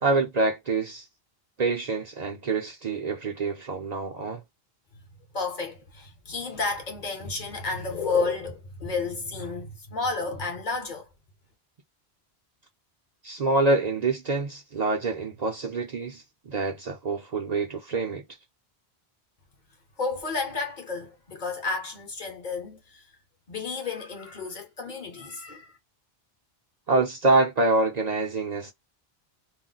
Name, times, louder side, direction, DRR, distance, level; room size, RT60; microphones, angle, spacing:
voice 1, 0.0-1.1 1.6-4.4 13.2-18.2 26.9-28.7, right 3 dB, 50° right, 0.6 m, -26 dB
voice 2, 5.3-11.1 20.0-23.1 23.5-25.7, left 4 dB, 50° left, 0.9 m, -31 dB
2.4 x 2.1 x 3.8 m
omnidirectional pair, 1.0 m